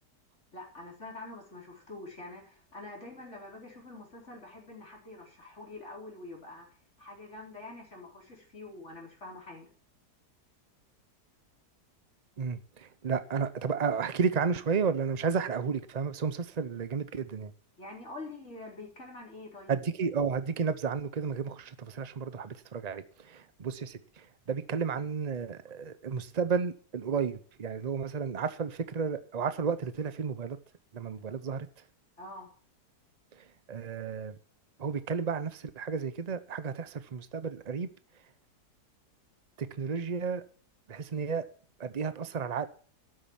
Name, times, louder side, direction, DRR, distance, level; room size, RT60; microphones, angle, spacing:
voice 1, 0.5-6.7 7.0-9.7 17.8-19.8 32.2-32.5, left 2 dB, 45° left, 4.3 m, -46 dB
voice 2, 12.4-17.5 19.7-30.6 30.9-31.7 33.3-34.4 34.8-37.9 39.6-40.4 40.9-41.4 41.8-42.7, right 6 dB, 50° right, 0.4 m, -32 dB
12.5 x 8.7 x 7.3 m
omnidirectional pair, 1.7 m